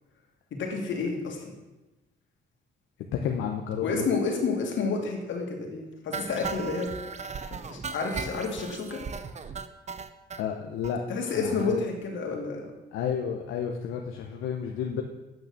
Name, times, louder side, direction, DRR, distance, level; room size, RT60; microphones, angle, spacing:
voice 1, 0.5-1.5 3.8-6.9 7.3-9.0 11.1-12.7, left 4 dB, 70° left, 1 dB, 2.4 m, -30 dB
voice 2, 3.1-4.1 10.4-11.0 11.3-11.8 12.9-15.0, left 8 dB, 85° left, 2 dB, 0.9 m, -31 dB
sound 1, 6.1-10.4 10.8-11.0 11.3-11.4 11.6-11.7 12.0-12.1, right 5 dB, 35° right, 0.7 m, -37 dB
9.0 x 6.1 x 6.7 m, 1.1 s
cardioid pair, 90°, 20 cm